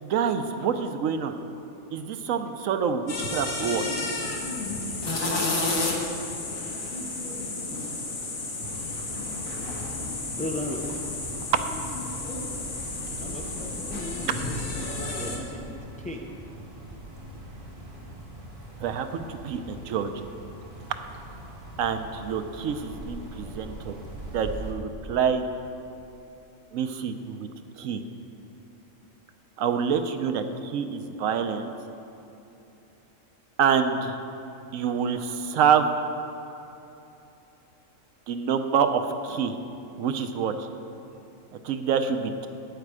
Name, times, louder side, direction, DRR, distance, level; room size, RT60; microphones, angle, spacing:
voice 1, 0.0-1.3 1.9-3.8 18.8-20.1 21.8-23.9 24.3-25.4 26.7-27.5 27.8-28.0 29.6-31.7 33.6-34.1 34.7-35.9 38.3-39.6 40.0-40.7 41.6-42.5, right 7 dB, 80° right, 8 dB, 1.1 m, -26 dB
sound 1, 3.1-15.4, left 2 dB, 85° left, 1.9 m, -31 dB
sound 2, 8.6-24.7, right 1 dB, 50° right, 1.7 m, -42 dB
voice 2, 10.3-11.0 12.1-12.3 13.1-16.3 23.4-23.7, left 1 dB, 10° left, 1 dB, 0.5 m, -37 dB
11.5 x 8.8 x 4.8 m, 2.9 s
omnidirectional pair, 1.4 m